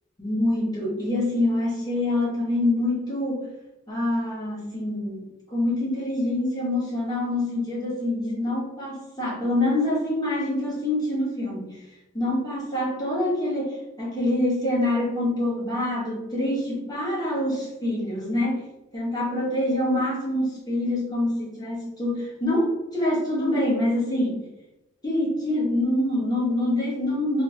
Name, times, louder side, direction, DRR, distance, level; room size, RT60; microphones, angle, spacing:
voice 1, 0.2-3.5 3.9-11.8 12.1-18.6 18.9-24.4 25.0-27.4, left 1 dB, 20° left, -5 dB, 1.2 m, -25 dB
3.1 x 2.6 x 3.2 m, 0.96 s
head